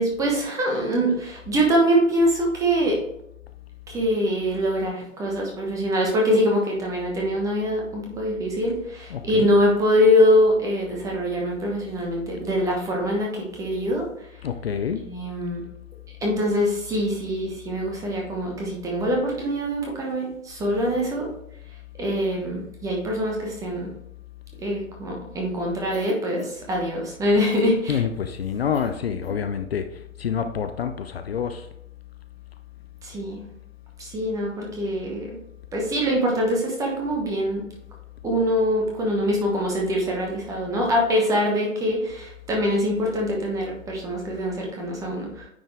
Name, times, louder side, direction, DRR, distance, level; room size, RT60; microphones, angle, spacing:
voice 1, 0.0-3.0 3.9-14.0 15.1-15.6 16.2-21.3 22.0-23.9 24.6-28.0 33.0-33.4 34.0-35.4 35.7-37.6 38.2-45.5, equal, 10° right, -1 dB, 1.0 m, -24 dB
voice 2, 9.1-9.5 14.4-15.0 27.9-29.9 30.2-31.7, left 7 dB, 50° left, 8 dB, 0.6 m, -27 dB
Cough, 25.9-26.8 27.5-27.7 28.7-28.9 29.2-29.4, left 2 dB, 85° left, 2.0 m, -40 dB
9.4 x 4.2 x 3.3 m, 0.78 s
figure-of-eight pair, 130°, 40 cm